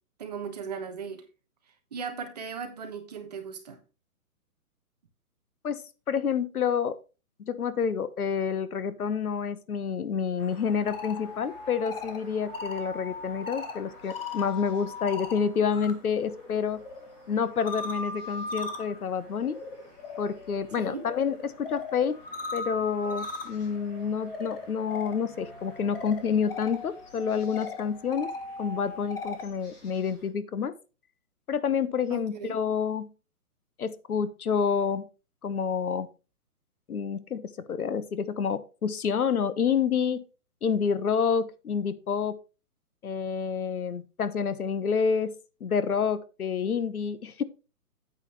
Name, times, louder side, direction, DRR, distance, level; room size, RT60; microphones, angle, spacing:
voice 1, 0.2-1.2 1.9-3.8 20.8-21.1 32.1-32.6, right 6 dB, 25° right, 1.3 m, -37 dB
voice 2, 5.6-7.0 7.5-16.8 17.3-19.6 20.2-22.2 22.5-28.3 28.6-30.7 31.5-33.1 33.8-35.0 35.4-36.1 36.9-40.2 40.6-42.4 43.0-45.3 45.6-47.4, left 6 dB, 70° left, 1.3 m, -28 dB
sound 1, 10.4-30.3, equal, 10° left, 2.2 m, -54 dB
sound 2, 10.7-15.9 16.2-29.5, left 3 dB, 40° left, 1.8 m, -39 dB
9.2 x 8.4 x 3.2 m
hypercardioid pair, 175°, 46 cm